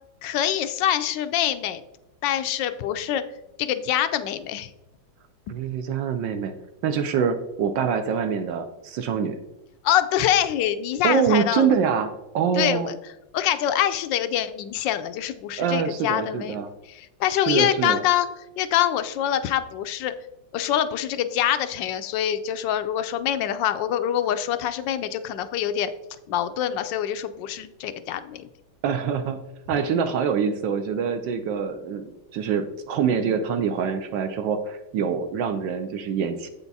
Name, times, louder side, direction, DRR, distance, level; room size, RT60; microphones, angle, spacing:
voice 1, 0.2-1.8 2.2-3.2 3.6-4.7 5.5-5.6 9.8-11.7 12.6-12.9 13.3-16.6 16.9-18.3 18.6-20.1 20.5-25.9 26.3-28.4, left 11 dB, 75° left, 11 dB, 1.2 m, -25 dB
voice 2, 5.5-6.5 6.8-9.4 11.0-12.9 15.6-16.7 17.4-18.0 28.8-29.4 29.7-36.5, right 6 dB, 75° right, 8 dB, 1.3 m, -25 dB
8.2 x 5.8 x 4.0 m, 0.93 s
omnidirectional pair, 2.1 m